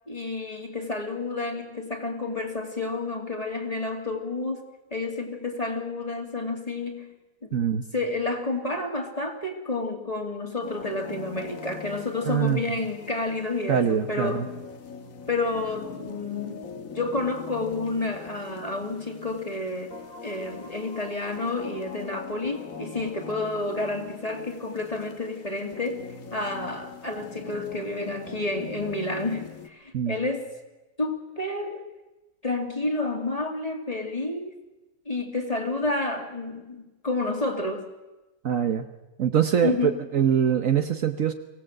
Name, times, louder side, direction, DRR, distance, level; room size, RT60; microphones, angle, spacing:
voice 1, 0.1-4.7 4.9-7.1 7.5-7.6 7.9-14.5 15.3-30.4 31.0-31.9 32.4-34.6 35.1-37.9 39.6-40.0, left 2 dB, 25° left, 3 dB, 2.5 m, -30 dB
voice 2, 7.5-7.8 12.3-12.6 13.7-14.5 29.9-30.2 38.4-38.8 39.2-41.3, right 8 dB, 60° right, 8 dB, 1.3 m, -23 dB
sound 1, 10.6-29.7, left 6 dB, 60° left, 1.8 m, -42 dB
23.5 x 17.5 x 7.7 m, 1.1 s
omnidirectional pair, 1.7 m